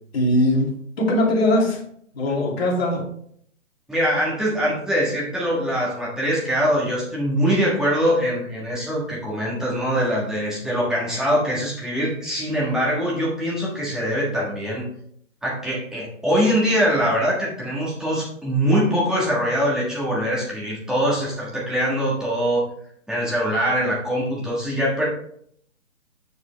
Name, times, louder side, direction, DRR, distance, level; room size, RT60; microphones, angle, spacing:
voice 1, 0.1-1.8 2.1-3.1, left 1 dB, 50° left, -2 dB, 2.5 m, -20 dB
voice 2, 3.9-14.8 15.4-22.6 23.1-25.1, equal, ahead, -6 dB, 1.5 m, -23 dB
7.1 x 6.3 x 3.3 m, 0.66 s
figure-of-eight pair, 140°, 39 cm